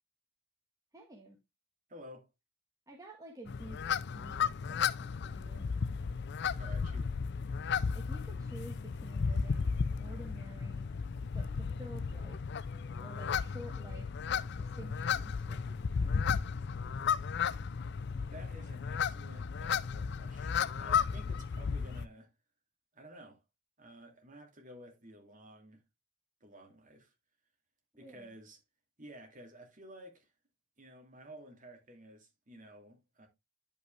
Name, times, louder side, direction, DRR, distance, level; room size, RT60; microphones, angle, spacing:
voice 1, 0.9-1.4 2.9-3.8 4.1-5.7 7.9-10.9 11.3-12.4 13.0-16.3 28.0-28.3, right 1 dB, 15° right, 1.4 m, -51 dB
voice 2, 1.9-2.3 6.6-7.2 18.3-22.3 22.9-23.4 23.8-25.8 26.4-27.1 28.0-28.6 29.0-30.3 30.8-33.3, right 1 dB, 40° right, 2.6 m, -53 dB
sound 1, 3.5-22.1, left 6 dB, 55° left, 0.4 m, -34 dB
10.5 x 5.5 x 3.3 m
head